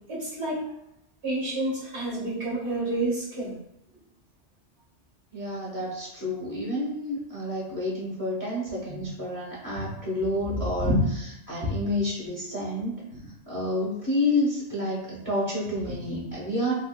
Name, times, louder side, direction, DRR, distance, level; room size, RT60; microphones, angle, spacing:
voice 1, 0.1-0.6 1.2-3.6 8.9-9.1 9.8-9.9 10.5-11.0 11.6-11.7 15.9-16.2, right 1 dB, 65° right, -7 dB, 1.9 m, -29 dB
voice 2, 5.3-10.9 11.5-13.0 13.5-16.7, left 1 dB, 20° left, -5 dB, 0.9 m, -29 dB
4.2 x 2.7 x 2.2 m, 0.80 s
omnidirectional pair, 1.2 m